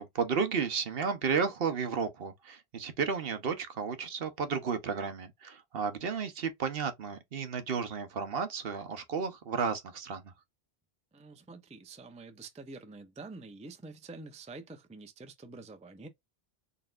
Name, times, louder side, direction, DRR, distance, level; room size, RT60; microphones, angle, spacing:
voice 1, 0.0-10.3, right 5 dB, 65° right, 1.0 m, -33 dB
voice 2, 11.1-16.1, right 3 dB, 10° right, 0.4 m, -47 dB
4.1 x 3.4 x 2.4 m
omnidirectional pair, 1.1 m